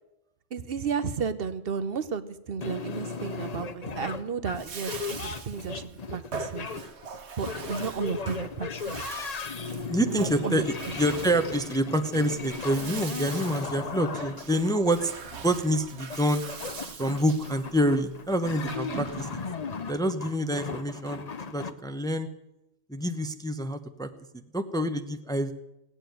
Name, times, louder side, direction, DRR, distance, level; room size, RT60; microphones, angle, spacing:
voice 1, 0.5-6.7 7.4-9.1 10.1-10.6 14.1-14.2, right 6 dB, 55° right, 13 dB, 1.1 m, -33 dB
sound 1, 2.6-21.7, left 5 dB, 40° left, 0.8 m, -37 dB
Bathtub (filling or washing), 4.4-19.6, right 5 dB, 70° right, 1.5 m, -42 dB
voice 2, 9.9-15.1 15.4-16.4 17.0-19.4 19.9-22.3 22.9-25.5, equal, 5° left, 8 dB, 0.7 m, -27 dB
18.0 x 8.8 x 9.3 m, 0.91 s
omnidirectional pair, 1.2 m